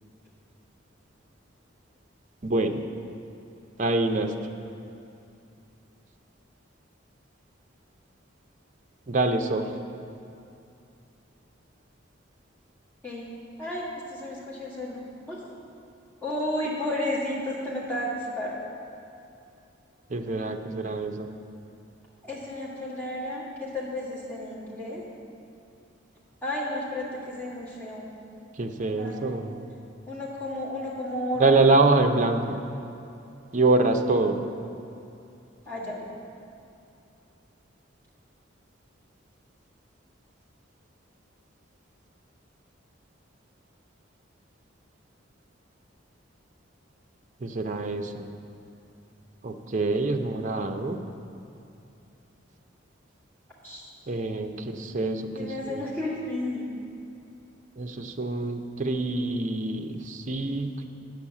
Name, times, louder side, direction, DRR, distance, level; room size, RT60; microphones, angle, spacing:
voice 1, 2.4-2.8 3.8-4.3 9.1-9.7 20.1-21.3 28.6-29.7 31.4-32.6 33.5-34.4 47.4-48.3 49.4-51.0 54.1-55.8 57.8-60.9, right 3 dB, 40° right, 5 dB, 0.5 m, -25 dB
voice 2, 13.6-15.4 16.2-18.6 22.2-25.0 26.4-28.1 29.0-29.4 30.1-31.7 35.7-36.1 53.6-53.8 55.3-56.7, left 1 dB, 10° left, -8 dB, 2.0 m, -32 dB
8.5 x 6.3 x 7.2 m, 2.6 s
head